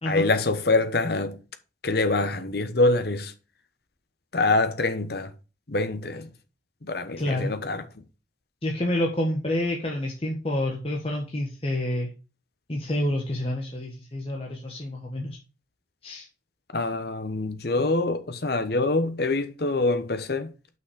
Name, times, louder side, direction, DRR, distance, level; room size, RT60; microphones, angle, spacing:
voice 1, 0.1-1.4 1.8-3.3 4.3-5.3 5.7-6.3 6.8-7.9 16.7-20.5, left 2 dB, 60° left, 1.1 m, -25 dB
voice 2, 7.2-7.5 8.6-12.1 12.7-15.4 16.0-16.3, left 1 dB, 30° left, 1.4 m, -28 dB
6.3 x 6.0 x 6.3 m
head